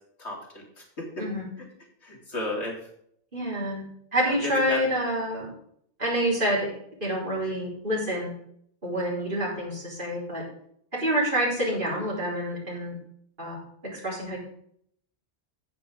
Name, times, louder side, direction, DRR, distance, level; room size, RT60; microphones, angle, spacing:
voice 1, 0.2-0.6 1.0-1.2 2.0-2.8 4.3-4.8, left 1 dB, 80° left, -2 dB, 3.2 m, -33 dB
voice 2, 3.3-5.5 6.0-6.7 7.0-8.3 8.8-10.4 10.9-13.0 13.4-13.6 13.9-14.4, equal, 50° right, -4 dB, 4.2 m, -27 dB
9.9 x 9.1 x 3.9 m, 0.67 s
omnidirectional pair, 1.1 m